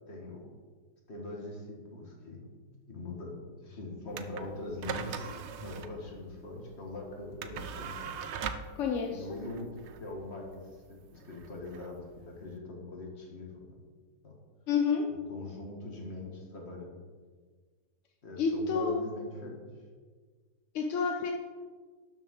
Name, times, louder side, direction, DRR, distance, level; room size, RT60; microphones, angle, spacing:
voice 1, 0.1-0.5 1.1-2.5 2.9-5.3 5.6-8.2 9.1-13.7 14.2-14.4 15.3-17.0 18.2-19.7, left 2 dB, 40° left, 0 dB, 2.0 m, -42 dB
sound 1, 4.1-12.6, right 6 dB, 70° right, 0.6 m, -42 dB
voice 2, 8.8-9.4 14.7-15.1 18.4-19.0 20.7-21.3, left 5 dB, 60° left, 3 dB, 0.9 m, -29 dB
12.0 x 6.9 x 3.8 m, 1.5 s
omnidirectional pair, 1.9 m